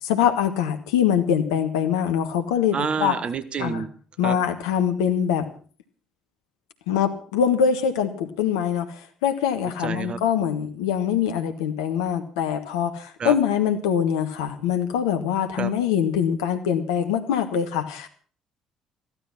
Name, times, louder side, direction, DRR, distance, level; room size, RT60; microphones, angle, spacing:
voice 1, 0.0-3.1 3.6-3.8 4.2-5.5 6.9-8.9 9.2-18.1, left 8 dB, 75° left, 8 dB, 1.4 m, -23 dB
voice 2, 2.7-3.9 4.2-4.4 9.8-10.2 13.2-13.3 15.6-15.7, right 6 dB, 45° right, 13 dB, 1.3 m, -28 dB
15.0 x 12.5 x 5.9 m, 0.42 s
figure-of-eight pair, 45°, 3 cm